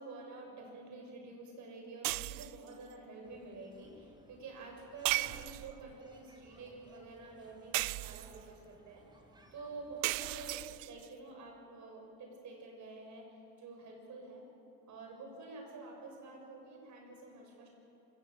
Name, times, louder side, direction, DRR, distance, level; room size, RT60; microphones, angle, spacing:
voice 1, 0.0-9.0 9.5-13.3 13.6-14.4 14.9-17.7, right 3 dB, 60° right, 1 dB, 6.8 m, -49 dB
sound 1, 2.0-2.7 5.1-5.9 7.7-8.5 10.0-11.1, right 20 dB, 85° right, 0.5 m, -36 dB
sound 2, 3.2-10.4, right 1 dB, 15° right, 2.6 m, -63 dB
27.0 x 17.5 x 7.9 m, 2.8 s
cardioid pair, 115°, 33 cm